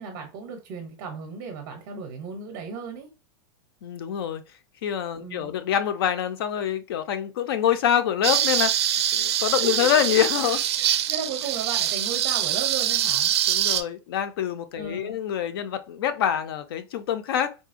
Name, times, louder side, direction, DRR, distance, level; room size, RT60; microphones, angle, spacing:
voice 1, 0.0-3.1 5.2-5.5 9.6-9.9 10.8-13.3 14.7-15.2, right 6 dB, 30° right, 0.6 m, -35 dB
voice 2, 3.8-4.4 4.8-10.7 13.5-17.5, left 9 dB, 65° left, 0.5 m, -26 dB
sound 1, 8.2-13.8, right 11 dB, 90° right, 0.4 m, -24 dB
3.7 x 2.1 x 2.4 m
supercardioid pair, 180°, 13 cm